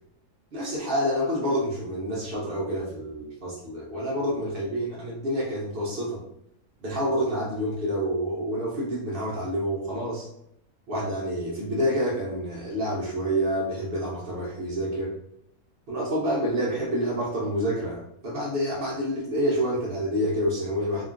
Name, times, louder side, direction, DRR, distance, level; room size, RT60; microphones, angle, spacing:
voice 1, 0.5-6.2 6.8-10.3 10.9-15.1 15.9-21.1, equal, 60° right, -4 dB, 0.6 m, -28 dB
2.9 x 2.4 x 2.4 m, 0.75 s
omnidirectional pair, 1.7 m